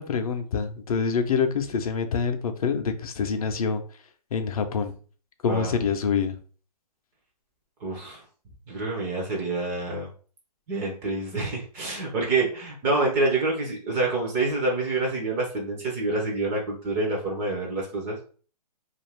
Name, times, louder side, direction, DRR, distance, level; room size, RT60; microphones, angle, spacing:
voice 1, 0.0-3.8 4.3-4.9 5.4-6.4, left 6 dB, 60° left, 0.5 m, -26 dB
voice 2, 7.8-8.2 8.7-10.1 10.7-18.2, right 2 dB, 15° right, 0.4 m, -27 dB
2.4 x 2.4 x 3.2 m
hypercardioid pair, 145°, 21 cm